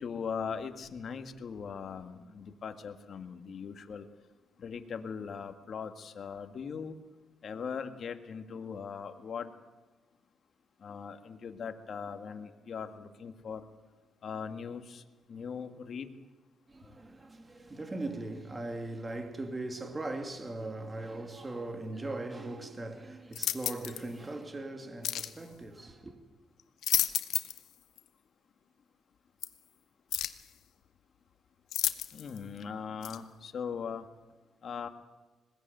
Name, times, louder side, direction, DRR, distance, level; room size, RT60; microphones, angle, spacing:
voice 1, 0.0-4.1 4.6-6.9 7.4-9.5 10.8-13.6 14.2-15.0 15.3-16.1 32.1-34.0 34.6-34.9, left 6 dB, 55° left, 1.8 m, -40 dB
voice 2, 16.7-26.2, right 2 dB, 25° right, 2.7 m, -39 dB
sound 1, 23.3-24.0 25.0-25.4 26.6-27.7 28.0-28.1 29.4-29.5 30.1-30.5 31.7-32.4 33.0-33.2, left 11 dB, 75° left, 1.1 m, -32 dB
20.5 x 17.5 x 9.1 m
cardioid pair, 90°, 0 cm